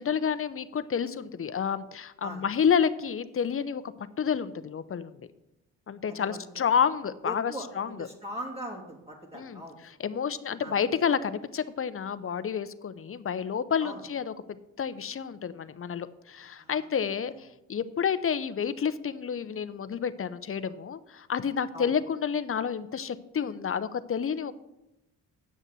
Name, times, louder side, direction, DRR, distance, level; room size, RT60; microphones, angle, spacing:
voice 1, 0.0-5.2 5.9-8.1 9.3-14.3 14.8-24.5, left 7 dB, 35° left, 13 dB, 0.8 m, -30 dB
voice 2, 6.1-6.6 7.2-9.8 10.6-10.8 13.8-14.0 16.6-16.8 21.7-21.9, equal, 15° right, -2 dB, 2.8 m, -40 dB
8.9 x 6.4 x 7.8 m, 0.91 s
supercardioid pair, 65°, 36 cm